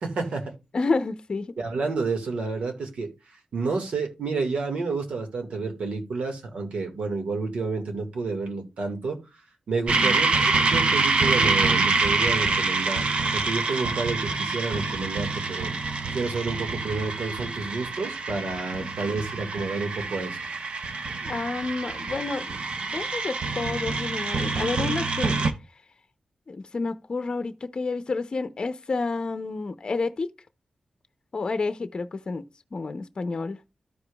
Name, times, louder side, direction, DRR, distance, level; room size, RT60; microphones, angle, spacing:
voice 1, 0.0-0.5 1.6-3.1 3.5-9.2 9.7-13.1 13.3-20.4, right 4 dB, 85° right, 1.8 m, -30 dB
voice 2, 0.7-1.6 9.9-10.2 18.8-18.9 21.2-25.4 26.5-30.3 31.3-32.4 32.7-33.6, left 3 dB, 45° left, 0.6 m, -30 dB
sound 1, 9.9-25.5, right 3 dB, 65° right, 0.8 m, -26 dB
13.5 x 5.0 x 2.3 m
wide cardioid pair, 95°, 2 cm